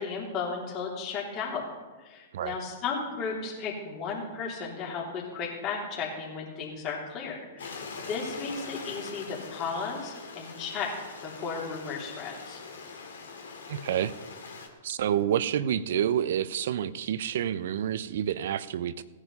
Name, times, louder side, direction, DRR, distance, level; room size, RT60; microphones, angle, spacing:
voice 1, 0.0-1.6 2.0-7.8 8.1-10.9 11.2-12.6, left 5 dB, 35° left, -3 dB, 3.3 m, -34 dB
Stream, 7.6-14.7, left 4 dB, 75° left, 2.3 m, -43 dB
voice 2, 13.7-14.1 14.8-19.0, right 10 dB, 60° right, 16 dB, 0.7 m, -28 dB
17.0 x 9.9 x 5.5 m, 1.3 s
figure-of-eight pair, 110°, 0 cm